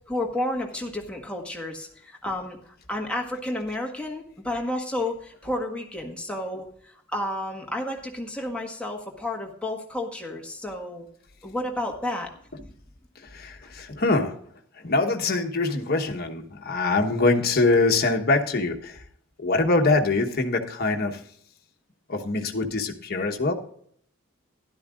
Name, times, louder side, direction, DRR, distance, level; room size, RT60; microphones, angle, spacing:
voice 1, 0.1-11.1 11.4-12.3 12.6-12.7, left 1 dB, 5° left, 0 dB, 1.6 m, -31 dB
voice 2, 13.3-14.3 14.8-19.0 19.4-21.2 22.1-23.5, left 3 dB, 50° left, 3 dB, 1.2 m, -23 dB
13.0 x 11.5 x 2.5 m, 0.64 s
head